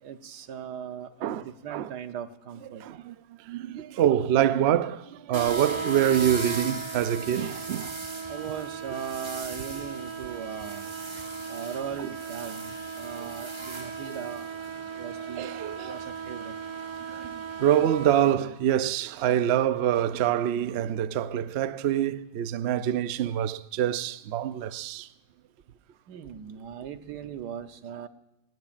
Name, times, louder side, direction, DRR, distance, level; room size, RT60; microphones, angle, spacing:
voice 1, 0.0-2.8 8.3-10.9 11.5-14.4 15.0-15.5 15.8-16.5 26.1-28.1, right 8 dB, 85° right, 1.5 m, -38 dB
voice 2, 2.7-3.1 3.4-7.9 11.2-11.3 12.0-12.1 13.2-13.3 15.4-15.9 17.1-25.1, right 10 dB, 70° right, 0.6 m, -26 dB
sound 1, 5.3-18.3, right 4 dB, 25° right, 0.7 m, -36 dB
19.0 x 19.0 x 2.5 m
omnidirectional pair, 1.7 m